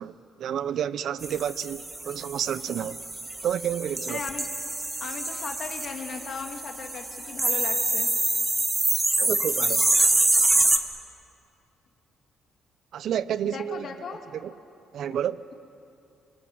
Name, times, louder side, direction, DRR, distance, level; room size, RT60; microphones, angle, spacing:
voice 1, 0.0-3.0 3.4-4.2 9.2-9.9 12.9-13.9 14.4-14.5 14.9-15.5, right 9 dB, 70° right, 0.7 m, -30 dB
sound 1, 1.2-10.8, right 2 dB, 20° right, 1.8 m, -26 dB
voice 2, 4.1-4.5 5.0-8.1 13.4-14.2 15.1-15.2, left 5 dB, 60° left, 2.2 m, -37 dB
26.5 x 20.5 x 9.5 m
cardioid pair, 90°, 0 cm